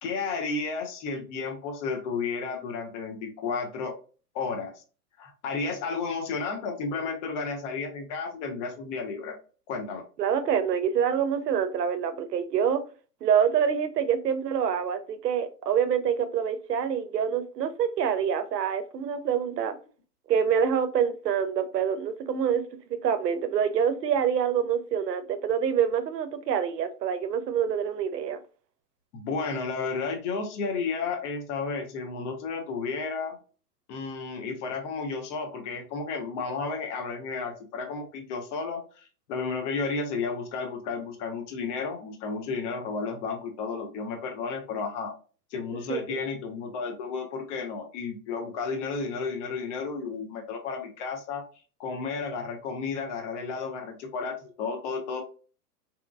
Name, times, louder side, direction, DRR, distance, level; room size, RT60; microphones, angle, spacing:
voice 1, 0.0-3.9 4.3-4.7 5.2-9.4 9.7-10.0 29.1-33.4 33.9-45.1 45.5-51.4 51.8-55.2, left 4 dB, 50° left, 0.9 m, -32 dB
voice 2, 10.2-12.8 13.2-19.8 20.3-22.6 22.9-28.4 45.9-46.2, right 8 dB, 85° right, 0.6 m, -26 dB
2.9 x 2.3 x 2.2 m
hypercardioid pair, 110°, 47 cm